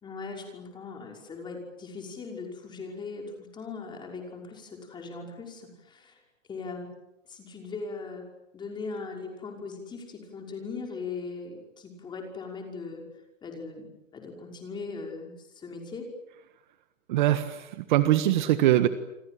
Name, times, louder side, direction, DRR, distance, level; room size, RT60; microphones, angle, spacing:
voice 1, 0.0-6.2 6.5-6.9 7.3-8.2 8.5-13.0 13.4-16.1, left 4 dB, 10° left, 2 dB, 5.7 m, -39 dB
voice 2, 17.1-18.9, right 13 dB, 40° right, 11 dB, 1.5 m, -22 dB
29.0 x 25.0 x 7.9 m, 0.91 s
hypercardioid pair, 155°, 39 cm